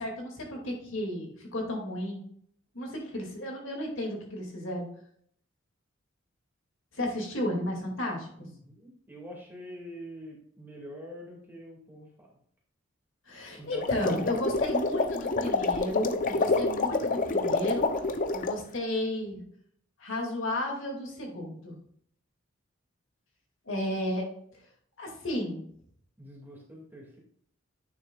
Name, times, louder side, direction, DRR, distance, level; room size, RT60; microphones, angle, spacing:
voice 1, 0.0-2.2 2.7-4.9 6.9-8.3 13.3-17.9 18.3-19.4 20.0-21.8 23.7-24.2 25.0-25.6, left 1 dB, 70° left, 0 dB, 2.3 m, -33 dB
voice 2, 8.3-12.3 13.6-14.4 14.6-15.0 26.2-27.2, equal, 10° right, -2 dB, 2.1 m, -45 dB
sound 1, 13.7-18.6, left 3 dB, 40° left, 0.6 m, -28 dB
9.2 x 6.7 x 2.4 m, 0.64 s
head